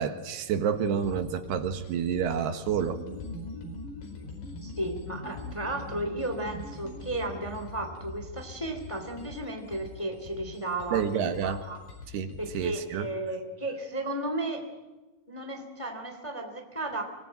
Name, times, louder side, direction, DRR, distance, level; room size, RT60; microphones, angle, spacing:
voice 1, 0.0-3.0 10.9-11.6 12.1-13.1, right 7 dB, 80° right, 8 dB, 3.6 m, -29 dB
sound 1, 0.7-12.7, left 5 dB, 85° left, 6.7 m, -44 dB
sound 2, 2.6-7.5, right 1 dB, 60° right, 5.6 m, -44 dB
voice 2, 4.6-11.8 12.4-14.7 15.3-17.0, right 1 dB, 10° left, 5 dB, 2.1 m, -34 dB
25.0 x 20.0 x 9.1 m, 1.2 s
omnidirectional pair, 4.7 m